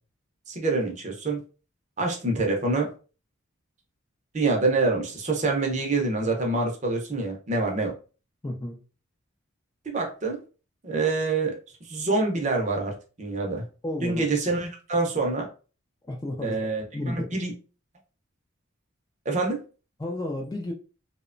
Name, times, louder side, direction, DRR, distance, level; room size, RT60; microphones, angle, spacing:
voice 1, 0.5-1.4 2.0-2.9 4.3-7.9 9.9-10.4 10.8-11.6 11.9-13.6 14.0-15.5 16.4-17.5 19.3-19.6, right 3 dB, 35° right, 0.6 m, -26 dB
voice 2, 8.4-8.8 13.8-14.2 16.0-16.6 16.9-17.3 20.0-20.7, left 1 dB, 20° left, 0.3 m, -32 dB
2.8 x 2.1 x 2.4 m
head